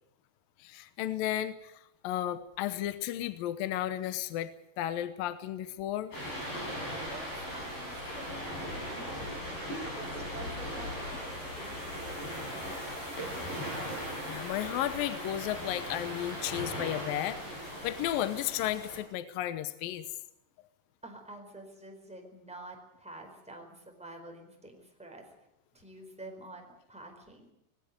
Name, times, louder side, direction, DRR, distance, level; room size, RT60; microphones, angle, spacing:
voice 1, 0.6-4.5 4.8-6.1 14.2-20.1, left 12 dB, 70° left, 12 dB, 2.4 m, -34 dB
sound 1, 6.1-19.0, equal, 55° left, 9.7 m, -38 dB
voice 2, 6.7-9.3 9.9-13.5 21.0-25.3 25.7-27.5, right 1 dB, ahead, 2 dB, 4.0 m, -49 dB
19.5 x 17.0 x 9.3 m, 0.79 s
omnidirectional pair, 4.8 m